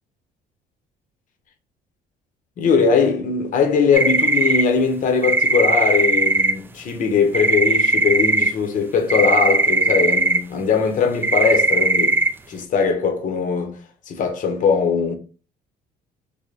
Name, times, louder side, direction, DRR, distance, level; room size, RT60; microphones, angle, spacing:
voice 1, 2.6-13.8 14.1-15.2, left 5 dB, 50° left, 0.8 m, -20 dB
sound 1, 3.9-4.6 5.2-6.5 7.3-8.5 9.1-10.4 11.2-12.3, right 3 dB, 15° right, 0.3 m, -18 dB
3.3 x 2.1 x 3.8 m
cardioid pair, 110°, 17 cm